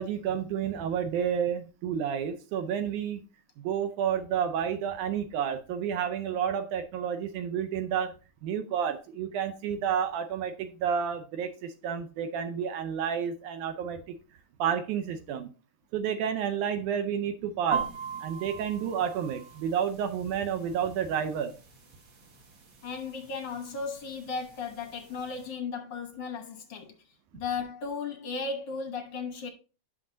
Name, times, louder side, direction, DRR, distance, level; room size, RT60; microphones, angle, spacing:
voice 1, 0.0-3.2 3.6-8.1 8.4-14.2 14.6-15.5 15.9-17.9 18.2-21.5, right 8 dB, 85° right, 2.2 m, -30 dB
sound 1, 17.7-25.5, right 6 dB, 65° right, 0.8 m, -41 dB
voice 2, 22.8-26.9 27.3-29.5, left 5 dB, 60° left, 1.2 m, -35 dB
11.0 x 6.0 x 2.6 m
omnidirectional pair, 3.4 m